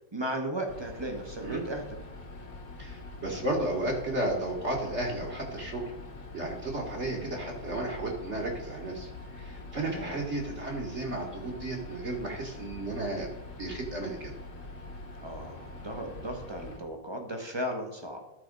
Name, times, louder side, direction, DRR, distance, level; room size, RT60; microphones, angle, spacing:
voice 1, 0.1-2.0 9.9-10.2 15.2-18.2, right 1 dB, 20° right, 3 dB, 0.7 m, -36 dB
sound 1, 0.7-16.8, left 2 dB, 65° left, 1.8 m, -44 dB
voice 2, 2.8-5.9 6.3-13.3 13.6-14.3, right 2 dB, 40° right, -1 dB, 1.4 m, -33 dB
12.0 x 4.2 x 5.2 m, 0.93 s
omnidirectional pair, 2.0 m